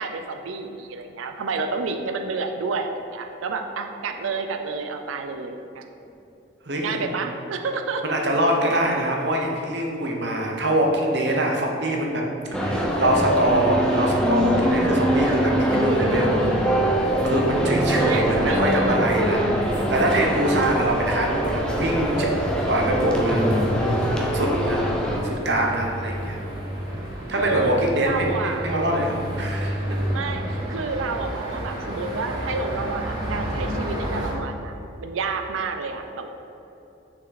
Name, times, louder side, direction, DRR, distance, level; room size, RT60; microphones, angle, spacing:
voice 1, 0.0-5.8 6.8-8.0 18.0-19.1 27.4-28.7 30.1-34.7 35.0-36.3, right 4 dB, 90° right, 6 dB, 0.4 m, -29 dB
voice 2, 6.7-7.1 8.0-12.3 12.5-16.4 17.0-22.3 22.7-24.8 25.2-26.4 27.3-29.8, right 1 dB, 60° right, 0 dB, 1.0 m, -24 dB
sound 1, 12.5-25.2, equal, 5° left, 0.6 m, -23 dB
sound 2, 15.1-34.3, equal, 20° right, 1.5 m, -31 dB
6.2 x 5.8 x 4.0 m, 2.9 s
head